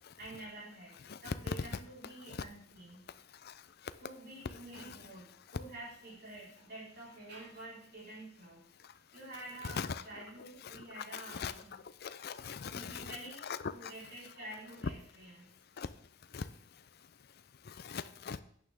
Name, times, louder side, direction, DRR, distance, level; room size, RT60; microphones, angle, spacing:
voice 1, 0.2-3.1 4.0-5.3 5.5-8.6 9.1-11.7 12.7-15.5, right 2 dB, 55° right, -6 dB, 4.3 m, -49 dB
voice 2, 1.1-1.7 4.8-4.9 9.6-10.0 10.6-11.5 12.0-13.2 13.4-13.9 15.8-15.9 16.3-16.4 17.8-18.4, left 5 dB, 50° left, 14 dB, 0.5 m, -40 dB
11.0 x 8.8 x 3.5 m, 0.65 s
head